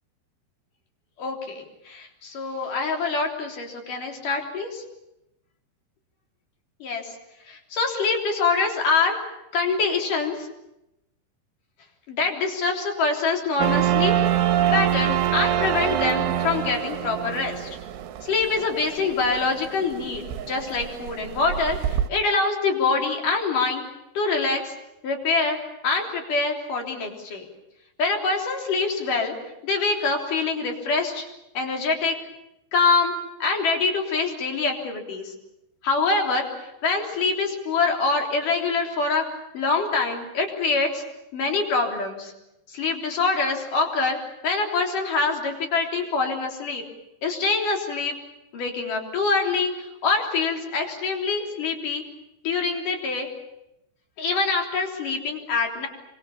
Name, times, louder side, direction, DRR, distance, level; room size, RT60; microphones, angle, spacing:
voice 1, 1.2-4.8 6.8-7.2 7.5-9.2 9.5-10.5 12.1-14.1 14.7-17.7 18.2-23.8 24.1-24.7 25.0-25.6 25.8-27.5 28.0-29.3 29.6-31.2 31.5-32.1 32.7-33.1 33.4-35.3 35.8-39.2 39.5-41.0 41.3-42.3 42.7-44.2 44.4-46.8 47.2-48.1 48.5-52.0 52.4-53.3 54.2-55.9, left 4 dB, 45° left, 2 dB, 4.7 m, -25 dB
sound 1, 13.6-22.1, right 11 dB, 85° right, 3.7 m, -25 dB
26.5 x 25.0 x 7.1 m, 0.87 s
omnidirectional pair, 5.5 m